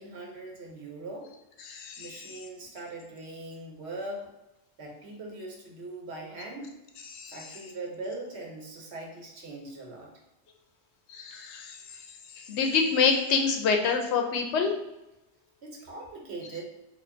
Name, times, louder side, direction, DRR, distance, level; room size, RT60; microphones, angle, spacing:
voice 1, 0.0-1.3 2.0-4.3 4.8-6.7 7.3-10.1 15.6-16.6, right 2 dB, 75° right, 0 dB, 1.0 m, -40 dB
voice 2, 1.6-2.4 7.1-7.6 11.1-14.7, left 5 dB, 80° left, 3 dB, 0.9 m, -27 dB
4.4 x 2.5 x 2.6 m, 0.95 s
omnidirectional pair, 1.1 m